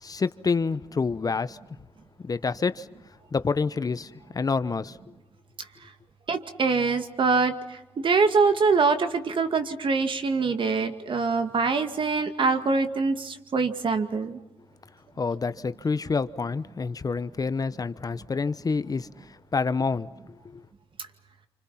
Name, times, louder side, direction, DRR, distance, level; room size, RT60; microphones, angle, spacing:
voice 1, 0.0-1.6 2.2-2.9 3.3-5.0 15.2-20.1 20.5-20.6, left 4 dB, 40° left, 1.0 m, -28 dB
voice 2, 6.3-14.4, right 4 dB, 55° right, 2.3 m, -24 dB
28.5 x 26.0 x 5.8 m
cardioid pair, 75°, 10 cm